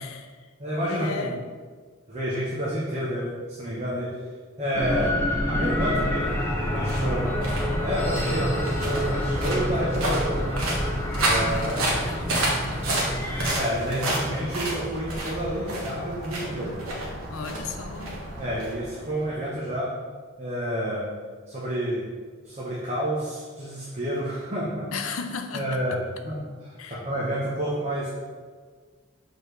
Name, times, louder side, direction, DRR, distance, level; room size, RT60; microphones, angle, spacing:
voice 1, 0.0-0.5 0.9-1.4 8.3-8.6 11.5-13.1 17.3-18.2 24.9-26.0 26.8-27.1, left 5 dB, 85° left, 7 dB, 0.6 m, -36 dB
voice 2, 0.6-1.3 2.1-4.1 4.6-5.2 5.5-6.3 6.7-7.3 7.8-10.6 11.2-12.1 13.5-16.8 18.4-19.9 20.4-21.1 21.5-22.1 22.4-25.0 25.5-28.1, equal, 35° right, -7 dB, 1.0 m, -29 dB
sound 1, 4.7-13.5, equal, 10° left, 0.6 m, -28 dB
sound 2, 6.0-19.3, right 1 dB, 90° right, 1.4 m, -31 dB
6.5 x 4.3 x 3.3 m, 1.5 s
head